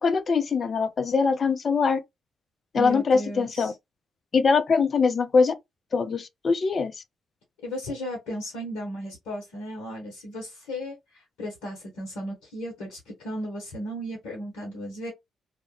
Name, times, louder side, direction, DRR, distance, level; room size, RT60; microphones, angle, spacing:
voice 1, 0.0-2.0 2.7-3.7 4.3-5.5 5.9-7.0, left 5 dB, 50° left, 0.5 m, -22 dB
voice 2, 2.7-3.8 7.6-15.1, equal, 75° left, 0.8 m, -35 dB
2.2 x 2.1 x 3.0 m
hypercardioid pair, 45°, 0 cm